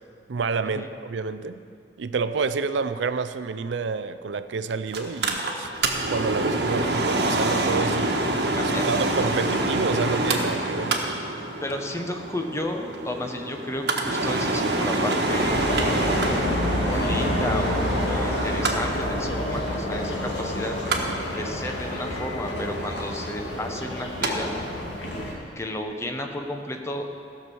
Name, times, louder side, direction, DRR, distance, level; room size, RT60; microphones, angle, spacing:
voice 1, 0.3-1.6 2.0-5.7 6.1-8.2 8.8-11.0, right 5 dB, 90° right, 12 dB, 0.5 m, -28 dB
Mechanical fan, 4.9-24.3 24.6-24.7, right 2 dB, 65° right, 1.3 m, -27 dB
voice 2, 8.5-8.9 11.6-15.6 16.7-20.8 21.3-24.5 25.6-27.1, left 1 dB, 15° left, 4 dB, 0.9 m, -32 dB
sound 1, 15.3-25.3, left 1 dB, 70° left, 2.1 m, -28 dB
16.0 x 6.1 x 6.9 m, 2.4 s
head